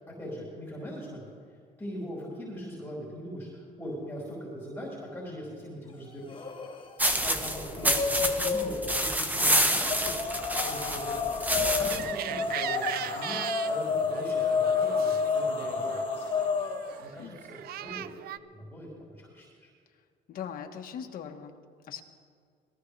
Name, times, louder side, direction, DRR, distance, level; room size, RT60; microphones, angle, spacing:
voice 1, 0.2-1.2 1.8-6.4 7.1-10.2 10.6-11.3 11.7-16.3 17.0-18.0 18.5-19.7, equal, 10° left, -6 dB, 4.6 m, -41 dB
sound 1, 6.3-6.9 7.2-9.0 9.8-17.0, left 5 dB, 30° left, 1.6 m, -30 dB
sound 2, 7.0-12.1, right 1 dB, 10° right, 1.2 m, -28 dB
sound 3, 11.9-18.4, right 11 dB, 65° right, 0.5 m, -38 dB
voice 2, 17.1-17.5 20.3-21.5 21.8-22.0, left 8 dB, 55° left, 4 dB, 1.5 m, -40 dB
21.5 x 15.0 x 3.4 m, 2.1 s
cardioid pair, 110°, 17 cm